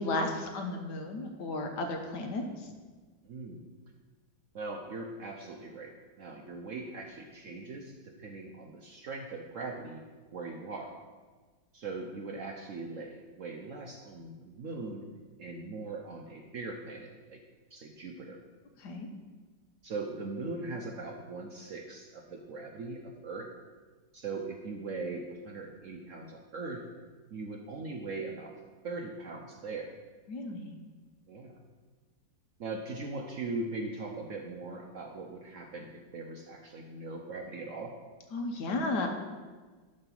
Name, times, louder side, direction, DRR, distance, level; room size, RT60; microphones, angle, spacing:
voice 1, 0.0-2.7 18.8-19.1 30.3-30.8 38.3-39.1, left 2 dB, 65° left, 3 dB, 1.5 m, -34 dB
voice 2, 3.2-3.6 4.5-5.9 6.2-10.0 10.3-10.9 11.7-15.1 15.4-17.4 17.7-18.4 19.8-23.5 24.1-26.8 27.3-28.5 28.8-29.9 31.3-31.5 32.6-37.9, right 3 dB, 60° right, 1 dB, 0.9 m, -40 dB
11.5 x 3.9 x 6.0 m, 1.4 s
omnidirectional pair, 2.0 m